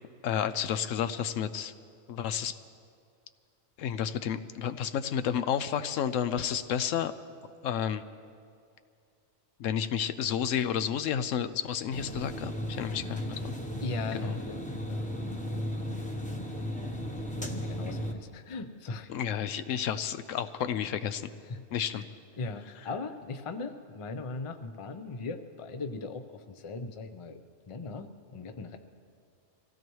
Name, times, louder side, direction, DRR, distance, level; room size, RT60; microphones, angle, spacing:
voice 1, 0.2-1.7 2.1-2.6 3.8-7.1 7.6-8.0 9.6-13.5 14.1-14.4 19.1-21.2 21.7-22.0, left 9 dB, 75° left, 12 dB, 0.9 m, -31 dB
sound 1, 11.9-18.1, equal, 5° left, 0.8 m, -35 dB
voice 2, 13.8-14.6 14.9-16.0 17.4-19.1 21.4-21.6 21.9-22.1 22.4-27.4 27.7-28.8, left 3 dB, 35° left, 8 dB, 0.5 m, -39 dB
25.0 x 16.0 x 3.1 m, 2.4 s
omnidirectional pair, 1.4 m